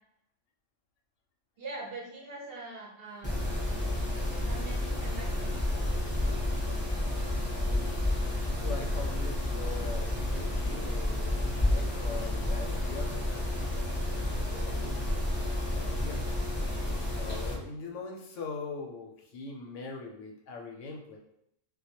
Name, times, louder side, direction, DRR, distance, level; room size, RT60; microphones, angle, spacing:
voice 1, 1.6-3.6 4.4-5.6, right 2 dB, 60° right, -2 dB, 0.7 m, -43 dB
Mechanisms, 3.2-17.5, left 1 dB, 15° left, 0.5 m, -30 dB
voice 2, 8.5-13.9 14.5-16.3 17.0-21.2, left 4 dB, 75° left, 1 dB, 0.9 m, -42 dB
2.2 x 2.1 x 2.8 m, 0.77 s
omnidirectional pair, 1.3 m